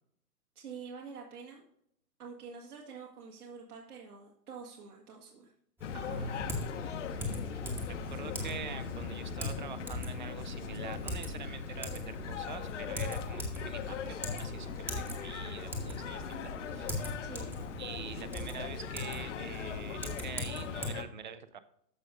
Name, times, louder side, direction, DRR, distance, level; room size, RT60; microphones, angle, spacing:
voice 1, 0.5-1.6 2.2-5.5 8.2-8.3 17.2-17.5, right 5 dB, 65° right, -1 dB, 1.7 m, -47 dB
sound 1, 5.8-21.0, left 6 dB, 50° left, 0.9 m, -40 dB
Typing, 5.8-20.9, left 1 dB, 5° right, 1.0 m, -41 dB
voice 2, 5.9-7.8 8.1-16.9 17.8-21.6, right 7 dB, 30° right, 14 dB, 0.4 m, -46 dB
14.0 x 5.2 x 2.5 m, 0.71 s
figure-of-eight pair, 125°, 49 cm